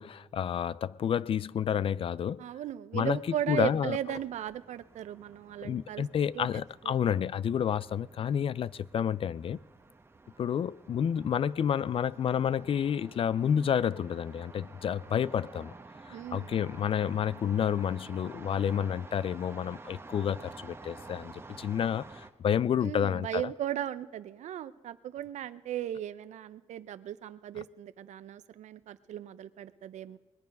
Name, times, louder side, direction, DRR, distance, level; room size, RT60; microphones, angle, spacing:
voice 1, 0.0-2.5 2.9-3.2 3.5-4.0 5.6-9.6 10.4-15.7 16.1-21.3 21.6-23.4, left 8 dB, 50° left, 0.3 m, -30 dB
voice 2, 2.4-6.0 6.3-6.9 16.1-16.5 22.8-30.2, right 11 dB, 90° right, 0.6 m, -37 dB
sound 1, 2.9-22.3, right 3 dB, 20° right, 1.0 m, -51 dB
21.0 x 9.2 x 5.3 m
cardioid pair, 105°, 12 cm